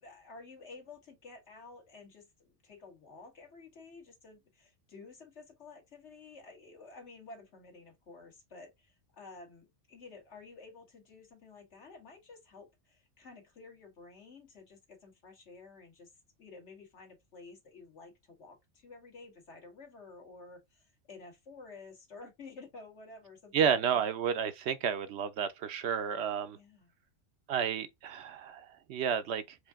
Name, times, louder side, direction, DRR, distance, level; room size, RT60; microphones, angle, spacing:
voice 1, 0.0-16.1 16.4-24.0 26.5-26.9, left 3 dB, 70° left, 1.9 m, -52 dB
voice 2, 23.5-26.6 27.5-29.6, right 7 dB, 70° right, 0.8 m, -31 dB
5.0 x 2.7 x 3.5 m
omnidirectional pair, 1.2 m